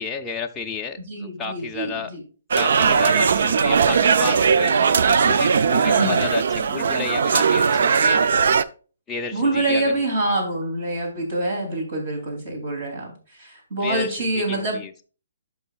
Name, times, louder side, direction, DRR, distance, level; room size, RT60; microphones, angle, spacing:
voice 1, 0.0-2.1 2.5-4.8 5.2-8.2 9.1-10.0 13.8-15.0, left 5 dB, 10° left, 1 dB, 0.5 m, -32 dB
voice 2, 1.1-2.2 5.8-6.3 9.3-14.8, right 2 dB, 35° right, 2 dB, 3.0 m, -25 dB
sound 1, 2.5-8.6, right 6 dB, 55° right, 0.4 m, -19 dB
12.5 x 5.4 x 2.4 m, 0.37 s
hypercardioid pair, 170°, 0 cm